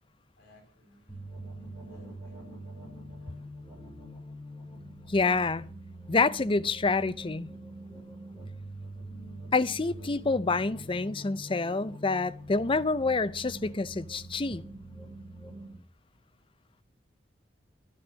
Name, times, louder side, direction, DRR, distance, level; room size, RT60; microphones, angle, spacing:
voice 1, 0.4-1.2 1.6-2.5 3.2-3.4, left 2 dB, 55° left, 6.2 m, -59 dB
sound 1, 1.1-15.7, right 1 dB, 5° left, 6.0 m, -44 dB
voice 2, 5.1-5.7 6.1-7.5 9.5-14.6, left 3 dB, 30° left, 0.6 m, -27 dB
11.5 x 11.5 x 7.4 m
head